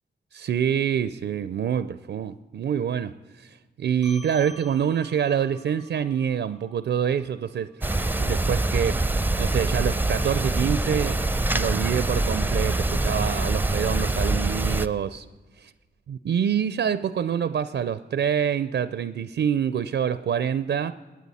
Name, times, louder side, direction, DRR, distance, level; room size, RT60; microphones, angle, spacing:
voice 1, 0.3-11.2 11.5-15.3 16.1-20.9, right 8 dB, 65° right, 0.4 m, -26 dB
sound 1, 4.0-8.8, equal, 75° left, 4.3 m, -50 dB
sound 2, 7.8-14.9, right 2 dB, 10° right, 0.5 m, -24 dB
18.0 x 9.2 x 4.1 m
cardioid pair, 45°, 19 cm